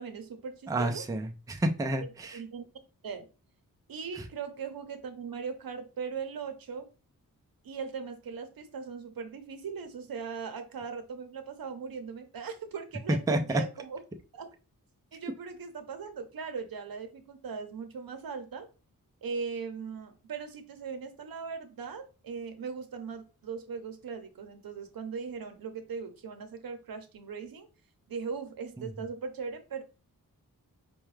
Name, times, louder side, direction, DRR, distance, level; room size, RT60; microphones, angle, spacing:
voice 1, 0.0-1.1 2.3-2.6 3.0-3.3 3.9-6.9 7.6-14.5 15.1-18.7 19.2-27.7 28.1-29.8, right 5 dB, 80° right, 7 dB, 0.7 m, -39 dB
voice 2, 0.7-2.4 13.3-13.6, right 1 dB, 10° right, 4 dB, 0.4 m, -29 dB
4.6 x 2.2 x 3.1 m, 0.33 s
wide cardioid pair, 120°, 35 cm